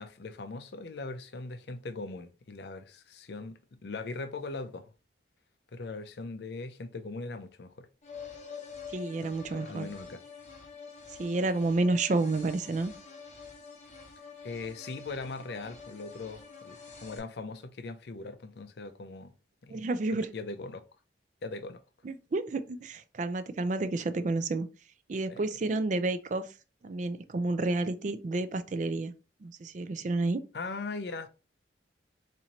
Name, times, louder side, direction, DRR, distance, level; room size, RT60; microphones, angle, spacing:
voice 1, 0.0-4.9 5.7-7.9 9.2-10.2 14.4-19.3 19.6-19.8 20.1-20.8 21.4-21.8 25.3-25.4 30.5-31.3, left 3 dB, 65° left, 0.5 m, -40 dB
sound 1, 8.0-17.2, left 5 dB, 40° left, 0.9 m, -47 dB
voice 2, 8.9-9.9 11.2-12.9 19.7-20.3 22.0-24.7 25.1-26.5 26.8-29.1 29.4-30.4, right 2 dB, 40° right, 0.4 m, -30 dB
4.2 x 2.6 x 2.9 m
head